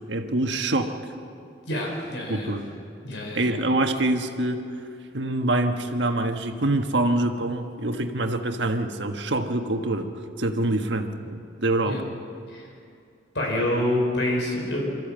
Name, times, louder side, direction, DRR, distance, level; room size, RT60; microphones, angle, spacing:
voice 1, 0.1-1.0 2.3-2.7 3.3-4.7 5.1-10.1 10.4-12.0, right 2 dB, 80° right, 5 dB, 1.4 m, -25 dB
voice 2, 1.7-2.5 3.0-3.5 11.8-12.0 12.5-12.7 13.3-14.9, left 1 dB, 85° left, -1 dB, 4.8 m, -27 dB
24.5 x 14.0 x 7.5 m, 2.4 s
head